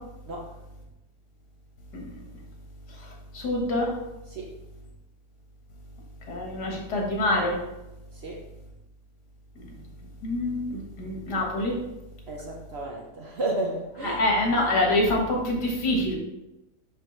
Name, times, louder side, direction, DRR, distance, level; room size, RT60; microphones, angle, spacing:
voice 1, 3.0-3.9 6.3-7.6 9.6-9.8 10.2-11.7 14.0-16.2, left 1 dB, 85° left, -1 dB, 2.0 m, -26 dB
voice 2, 12.3-14.2, right 2 dB, 50° right, 0 dB, 0.8 m, -32 dB
5.9 x 5.3 x 3.1 m, 0.96 s
omnidirectional pair, 1.7 m